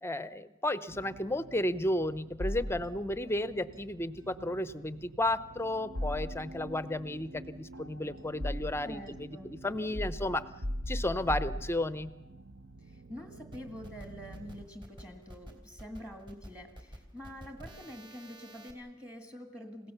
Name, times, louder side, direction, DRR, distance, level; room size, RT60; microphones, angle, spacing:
voice 1, 0.0-10.5 10.9-12.1, left 1 dB, 10° left, 15 dB, 0.7 m, -33 dB
sound 1, 0.9-14.7, right 2 dB, 60° right, 0.7 m, -51 dB
sound 2, 2.4-3.3 5.9-6.8 7.7-9.0 9.9-12.2, equal, 80° right, 1.6 m, -37 dB
voice 2, 8.8-9.5 12.8-19.9, equal, 5° right, 6 dB, 1.8 m, -46 dB
sound 3, 13.5-18.7, equal, 25° right, 3.2 m, -50 dB
29.5 x 16.5 x 6.9 m, 1.1 s
head